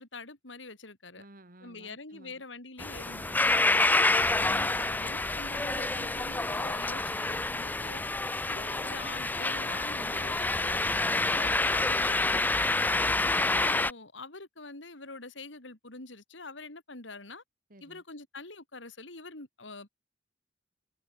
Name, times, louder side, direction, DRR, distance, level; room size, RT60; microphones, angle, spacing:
voice 1, 0.0-1.2 1.6-3.5 4.1-8.0 8.5-12.5 13.2-17.4 17.8-19.9, left 3 dB, 90° left, 4.2 m, -45 dB
voice 2, 1.2-2.4 3.7-4.1 17.7-18.0, right 1 dB, 50° right, 3.5 m, -54 dB
sound 1, 2.8-13.9, left 2 dB, 10° left, 0.4 m, -28 dB
head